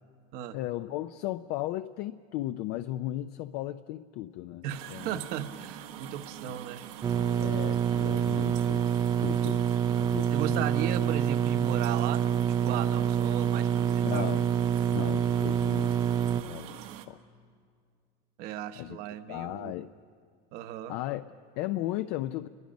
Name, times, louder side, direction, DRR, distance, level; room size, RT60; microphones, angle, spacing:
voice 1, 0.5-5.2 6.5-6.6 7.4-8.8 9.2-9.6 10.0-10.7 14.0-14.5 14.9-15.9 16.4-16.8 17.1-17.2 18.8-19.0 19.3-19.9 20.9-22.5, left 15 dB, 60° left, 11 dB, 0.5 m, -36 dB
voice 2, 4.6-6.8 10.3-14.3 18.4-19.7 20.5-20.9, right 10 dB, 55° right, 10 dB, 1.0 m, -36 dB
sound 1, 4.7-17.1, right 11 dB, 80° right, 1.4 m, -44 dB
sound 2, 7.0-16.4, right 8 dB, 20° right, 0.5 m, -26 dB
28.0 x 22.0 x 5.2 m, 2.2 s
cardioid pair, 160°, 19 cm